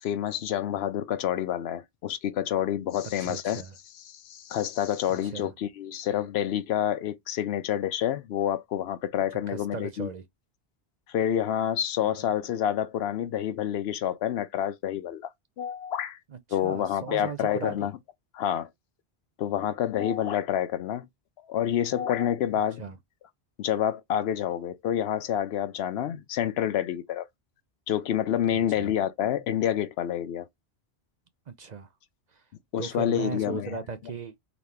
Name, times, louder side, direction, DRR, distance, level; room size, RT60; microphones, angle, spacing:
voice 1, 0.0-3.6 4.1-10.1 11.1-15.3 15.6-16.2 16.5-17.9 18.3-18.7 19.4-21.1 21.5-22.8 23.6-27.3 27.9-30.5 32.7-33.8, left 10 dB, 75° left, 0.8 m, -28 dB
voice 2, 3.2-3.7 5.3-5.5 9.5-10.2 12.0-12.1 16.3-17.9 22.8-23.0 28.5-28.9 31.5-31.9 32.3-32.4 32.8-34.4, right 5 dB, 50° right, 0.6 m, -37 dB
4.0 x 2.8 x 3.3 m
omnidirectional pair, 1.1 m